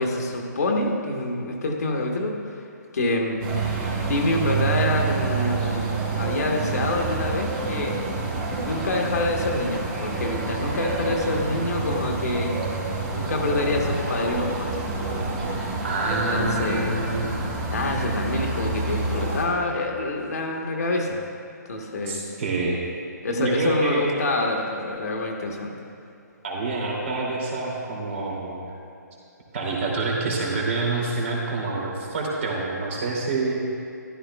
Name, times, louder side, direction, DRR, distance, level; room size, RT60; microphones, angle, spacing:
voice 1, 0.0-2.6 2.9-3.4 4.1-8.0 8.6-12.6 13.1-15.0 16.1-17.0 17.7-21.2 21.7-22.2 23.2-25.8, left 2 dB, 55° left, 1 dB, 1.4 m, -26 dB
sound 1, 3.4-19.4, right 3 dB, 30° right, 2.4 m, -28 dB
voice 2, 15.8-17.5 22.1-22.8 23.3-24.0 26.4-28.6 29.5-33.7, right 3 dB, 45° right, -3 dB, 2.7 m, -27 dB
14.5 x 12.0 x 2.3 m, 2.7 s
figure-of-eight pair, 135°, 10 cm